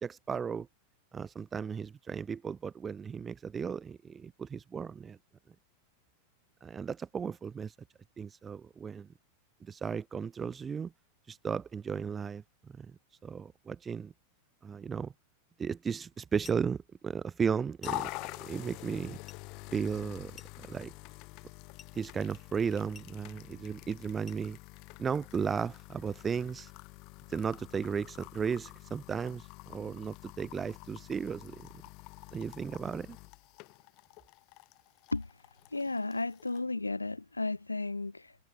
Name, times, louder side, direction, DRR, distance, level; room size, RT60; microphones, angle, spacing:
voice 1, 0.0-0.7 1.1-5.2 6.6-7.7 8.2-9.1 9.6-10.9 11.3-12.9 13.2-14.1 14.6-15.1 15.6-18.1 18.4-19.2 19.7-20.9 21.9-24.6 25.0-26.7 27.3-31.7 32.3-33.2, right 6 dB, 20° right, 1.5 m, -35 dB
sound 1, 16.4-16.8 17.8-18.2 19.3-19.5 20.4-20.8 21.8-22.0 22.9-23.2 24.3-24.5, left 7 dB, 20° left, 7.4 m, -53 dB
sound 2, 17.8-36.6, left 27 dB, 40° left, 7.0 m, -47 dB
voice 2, 35.7-38.4, left 3 dB, 80° left, 2.7 m, -34 dB
figure-of-eight pair, 90°, 0 cm